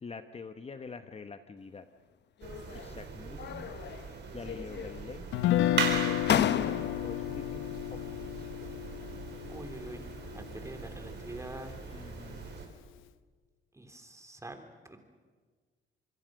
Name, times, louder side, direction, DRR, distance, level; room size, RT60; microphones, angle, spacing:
voice 1, 0.0-1.9 2.7-3.7 4.2-5.3 5.9-8.5 11.9-12.6, left 4 dB, 30° left, 9 dB, 1.0 m, -46 dB
sound 1, 2.4-3.0 3.4-4.1 4.4-5.2 5.8-5.9 6.3-7.2, left 9 dB, 60° left, 0.9 m, -32 dB
sound 2, 2.4-12.7, right 5 dB, 60° right, 4.1 m, -40 dB
Guitar, 5.3-11.4, left 14 dB, 85° left, 0.7 m, -32 dB
voice 2, 9.5-11.7 13.7-15.0, right 1 dB, 15° right, 5 dB, 3.3 m, -45 dB
26.0 x 22.0 x 6.4 m, 1.5 s
cardioid pair, 90°, 20 cm